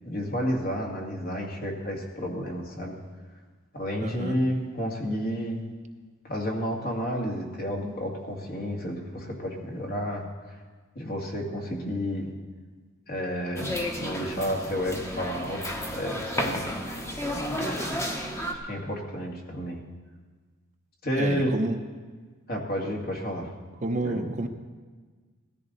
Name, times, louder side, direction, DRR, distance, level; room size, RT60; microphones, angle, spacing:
voice 1, 0.0-3.0 3.7-5.6 6.2-10.2 10.9-12.3 13.1-16.6 17.5-18.0 18.6-19.8 21.0-21.5 22.5-23.5 24.0-24.3, equal, 45° left, -1 dB, 2.3 m, -31 dB
voice 2, 4.0-4.4 17.3-17.4 21.2-21.8 23.8-24.5, right 2 dB, 35° right, 5 dB, 0.8 m, -29 dB
sound 1, 13.6-18.5, left 1 dB, 15° left, 1.3 m, -32 dB
17.5 x 13.5 x 4.1 m, 1.4 s
head